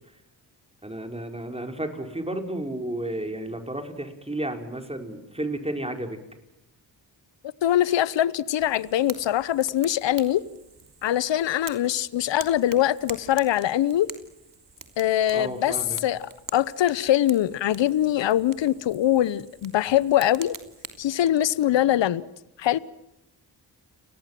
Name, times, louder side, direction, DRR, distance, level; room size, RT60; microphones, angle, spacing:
voice 1, 0.8-6.2 15.3-16.0, right 1 dB, 15° right, 5.4 m, -32 dB
voice 2, 7.6-10.4 11.0-14.1 15.0-15.8 16.0-16.2 16.5-20.6 21.0-22.2 22.6-22.8, left 12 dB, 80° left, 0.9 m, -23 dB
Fire, 8.6-21.0, right 5 dB, 45° right, 3.2 m, -45 dB
30.0 x 19.5 x 7.7 m
cardioid pair, 50°, 44 cm